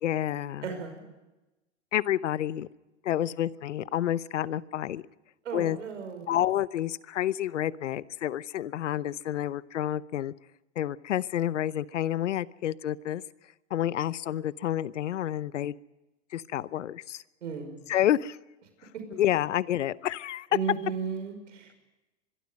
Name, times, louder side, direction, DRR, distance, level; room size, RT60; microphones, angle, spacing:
voice 1, 0.0-0.7 1.9-2.7 3.0-5.0 5.5-5.8 6.3-10.3 10.8-13.2 13.7-15.8 16.3-17.2 17.9-18.4 19.1-20.5, left 12 dB, 90° left, 19 dB, 0.8 m, -29 dB
voice 2, 0.6-1.0 5.5-6.3 17.4-17.7 20.5-21.7, right 6 dB, 85° right, 6 dB, 5.6 m, -34 dB
25.0 x 22.0 x 5.3 m, 1.0 s
hypercardioid pair, 105°, 35 cm